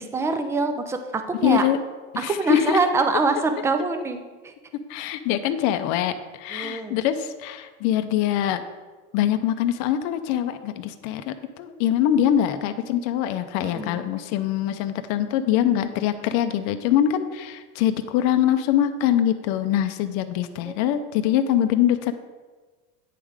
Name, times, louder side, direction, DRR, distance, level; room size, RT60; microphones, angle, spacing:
voice 1, 0.0-1.6 2.2-4.2 6.5-7.0 13.6-14.1 20.6-20.8, right 3 dB, 10° right, 7 dB, 0.4 m, -24 dB
voice 2, 1.4-1.8 2.1-2.8 4.9-8.6 9.1-22.1, left 11 dB, 55° left, 9 dB, 0.6 m, -23 dB
9.2 x 3.6 x 4.8 m, 1.3 s
supercardioid pair, 130°, 35 cm